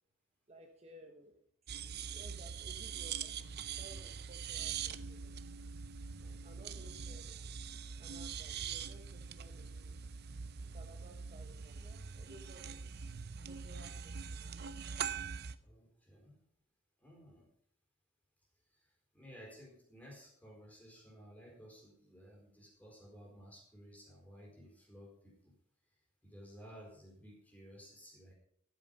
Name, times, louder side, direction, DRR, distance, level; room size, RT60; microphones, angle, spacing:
voice 1, 0.5-1.4 2.1-3.3 3.8-5.3 6.4-7.5 8.0-9.9 10.6-12.9 13.5-14.7, right 1 dB, 30° right, 2 dB, 1.2 m, -58 dB
sound 1, 1.7-15.6, right 7 dB, 50° right, 0.6 m, -43 dB
voice 2, 6.2-6.8 15.6-16.4 17.0-17.5 18.7-25.5 26.2-28.3, equal, 10° left, 0 dB, 4.3 m, -56 dB
13.0 x 9.2 x 5.4 m, 0.69 s
head